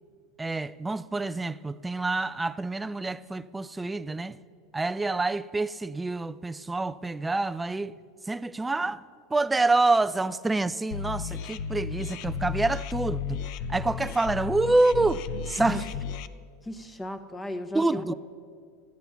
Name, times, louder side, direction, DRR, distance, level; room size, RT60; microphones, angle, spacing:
voice 1, 0.4-4.4 4.7-7.9 8.3-9.0 9.3-13.4 13.7-15.8 17.7-18.1, right 2 dB, 10° right, 0.4 m, -27 dB
sound 1, 10.9-16.3, left 7 dB, 60° left, 0.5 m, -34 dB
voice 2, 16.6-18.1, equal, 15° left, 1.1 m, -34 dB
13.5 x 9.5 x 5.8 m
hypercardioid pair, 105°, 0 cm